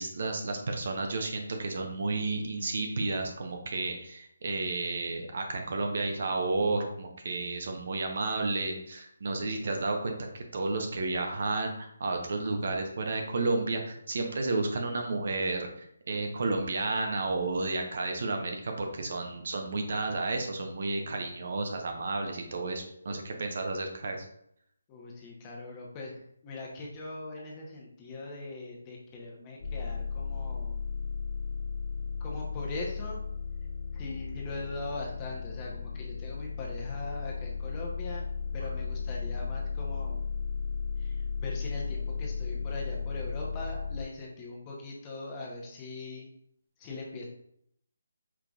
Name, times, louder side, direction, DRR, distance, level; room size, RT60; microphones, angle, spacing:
voice 1, 0.0-24.2, right 3 dB, 55° right, 3 dB, 0.8 m, -32 dB
voice 2, 24.9-30.8 32.2-33.2 33.9-38.2 38.5-40.3 41.0-46.3 46.8-47.3, left 2 dB, 20° left, -2 dB, 0.9 m, -41 dB
sound 1, 29.6-44.1, left 5 dB, 45° left, 0.6 m, -35 dB
4.8 x 3.8 x 2.4 m, 0.72 s
figure-of-eight pair, 160°, 0 cm